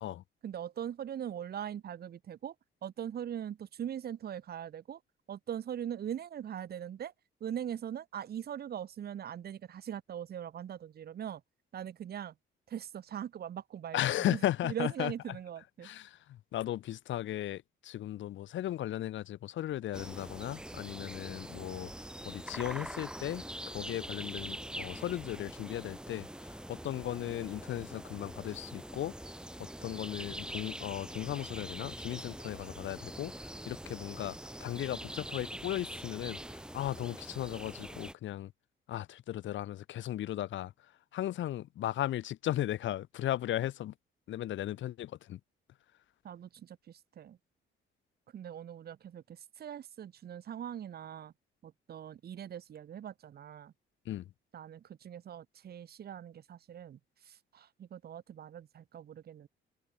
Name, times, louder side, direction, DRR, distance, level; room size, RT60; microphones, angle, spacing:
voice 1, 0.4-2.5 2.8-5.0 5.3-7.1 7.4-11.4 11.7-12.3 12.7-15.9 46.2-47.4 48.3-51.3 51.6-53.7 54.5-59.5, right 9 dB, 55° right, 1.0 m, -41 dB
voice 2, 13.9-15.1 15.8-21.9 22.2-29.1 29.6-38.5 38.9-40.7 41.1-43.9 44.3-45.4 54.0-54.3, left 13 dB, 70° left, 1.1 m, -36 dB
sound 1, 19.9-38.1, right 1 dB, 5° right, 1.3 m, -44 dB
cardioid pair, 90°, 20 cm